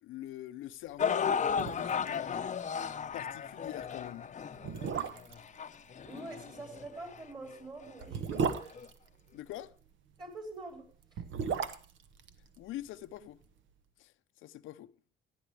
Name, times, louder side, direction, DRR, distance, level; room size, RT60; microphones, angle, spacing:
voice 1, 0.0-2.5 3.1-4.3 9.3-9.8 12.6-13.4 14.0-14.9, left 14 dB, 85° left, 0.6 m, -44 dB
sound 1, 1.0-7.2 7.9-8.0 8.8-8.9, left 7 dB, 40° left, 0.7 m, -35 dB
sound 2, 1.1-1.2 1.5-2.2 2.4-2.5 2.9-3.1 3.8-3.9 4.5-5.5 7.0-9.7 10.9-13.2 13.4-13.5, right 6 dB, 70° right, 1.2 m, -36 dB
voice 2, 6.0-8.8 10.2-10.9, right 2 dB, 20° right, 5.3 m, -45 dB
16.5 x 10.0 x 3.4 m
cardioid pair, 90°, 20 cm